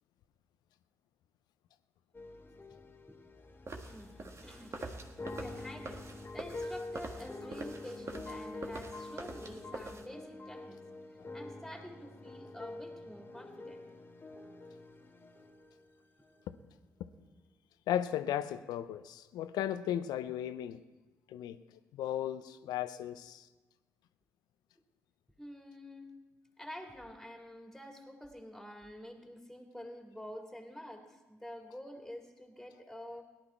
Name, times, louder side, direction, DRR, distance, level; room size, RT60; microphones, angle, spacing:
sound 1, 2.1-15.9 16.2-16.4, left 2 dB, 30° left, 1.3 m, -46 dB
sound 2, 3.7-10.1, right 2 dB, 40° right, 1.6 m, -45 dB
voice 1, 3.9-5.0 5.4-10.8 11.3-13.8 22.0-22.1 25.4-26.1 26.6-33.2, equal, 5° left, 2 dB, 2.9 m, -48 dB
voice 2, 17.9-20.8 21.3-21.6 21.9-23.5, left 11 dB, 70° left, 13 dB, 0.6 m, -35 dB
18.0 x 11.0 x 4.5 m, 1.1 s
hypercardioid pair, 45°, 7 cm